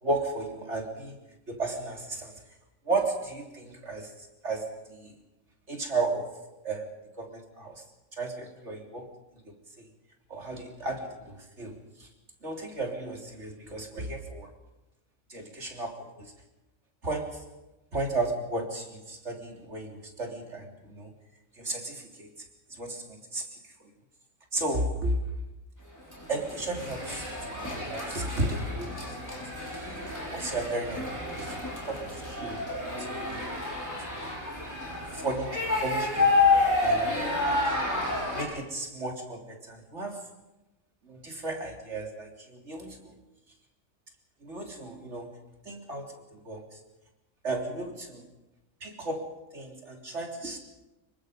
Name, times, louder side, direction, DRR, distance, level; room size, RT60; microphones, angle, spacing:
voice 1, 0.0-1.2 1.5-2.3 2.9-4.1 4.4-5.1 5.7-6.9 7.2-7.8 8.1-9.1 9.5-9.6 10.3-12.1 12.4-14.5 15.3-16.3 17.0-17.5 17.9-21.1 21.6-22.3 22.7-23.5 24.5-25.2 26.3-29.0 29.3-29.5 30.3-32.6 33.0-33.4 34.1-34.3 35.1-36.3 36.8-37.7 38.3-40.3 41.0-43.1 44.4-45.4 45.7-46.6 47.4-48.2 48.8-50.6, right 2 dB, 60° right, 2 dB, 3.9 m, -34 dB
sound 1, 26.1-38.4, left 3 dB, 15° left, 6.6 m, -29 dB
27.0 x 23.0 x 5.3 m, 0.99 s
omnidirectional pair, 1.3 m